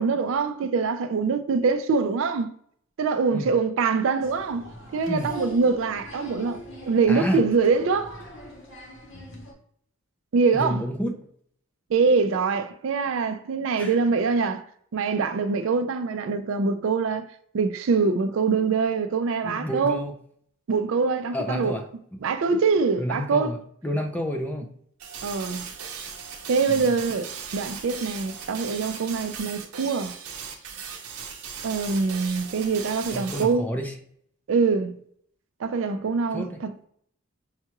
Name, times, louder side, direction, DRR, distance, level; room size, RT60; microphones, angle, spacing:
voice 1, 0.0-2.5 3.0-6.6 6.8-8.2 10.3-10.8 11.9-14.6 14.9-17.2 17.5-20.0 20.7-21.7 22.2-23.5 25.2-25.7 26.5-30.1 31.6-33.7 34.5-34.9 35.6-36.7, right 4 dB, 60° right, 0.4 m, -24 dB
Applause, 4.2-9.5, equal, 55° left, 0.9 m, -42 dB
voice 2, 7.1-7.4 10.5-11.1 13.8-14.0 19.4-20.1 21.3-21.8 23.0-23.6 23.8-24.7 26.7-26.9 33.1-33.9 36.3-36.6, equal, 5° left, 0.4 m, -29 dB
sound 1, 25.0-33.5, right 6 dB, 90° right, 0.7 m, -38 dB
5.5 x 2.3 x 2.9 m
head